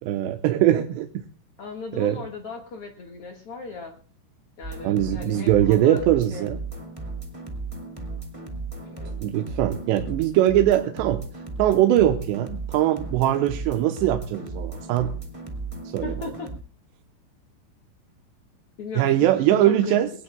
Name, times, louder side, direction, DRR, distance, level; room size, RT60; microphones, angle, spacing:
voice 1, 0.0-1.3 1.9-2.2 4.8-6.6 9.2-11.2 11.6-15.1 15.9-16.3 19.0-20.1, right 12 dB, 75° right, 5 dB, 2.9 m, -21 dB
voice 2, 1.6-3.9 4.6-6.0 6.3-6.6 8.8-9.2 16.0-16.5 18.8-19.3 19.6-20.0, left 4 dB, 70° left, 2 dB, 1.3 m, -37 dB
sound 1, 4.6-16.6, right 3 dB, 25° right, 0.7 m, -35 dB
22.0 x 18.5 x 2.2 m, 0.40 s
omnidirectional pair, 5.3 m